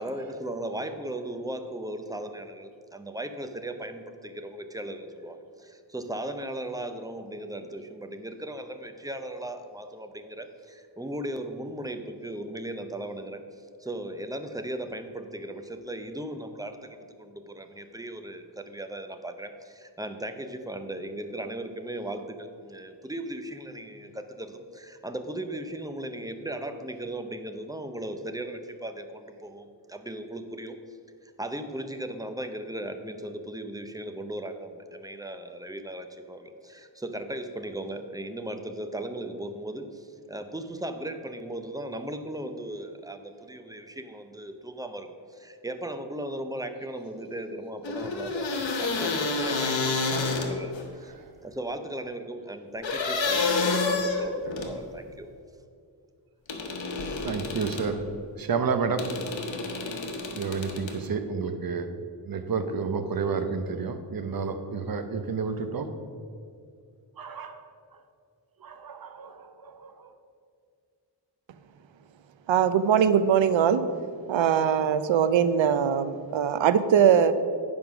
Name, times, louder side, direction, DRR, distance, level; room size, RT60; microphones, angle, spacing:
voice 1, 0.0-31.0 31.2-51.1 51.4-55.3, right 1 dB, 10° right, 7 dB, 0.6 m, -37 dB
sound 1, 47.8-50.8 52.8-54.8 56.5-57.9 59.0-61.0, left 3 dB, 80° left, 1.2 m, -29 dB
voice 2, 57.2-58.0 58.4-59.0 60.3-61.9 62.3-65.9 67.2-67.6 68.6-70.1, right 5 dB, 50° right, 8 dB, 0.8 m, -30 dB
voice 3, 72.5-73.8 74.3-77.3, right 8 dB, 85° right, 12 dB, 0.6 m, -21 dB
9.5 x 5.2 x 5.9 m, 2.3 s
wide cardioid pair, 115°, 45 cm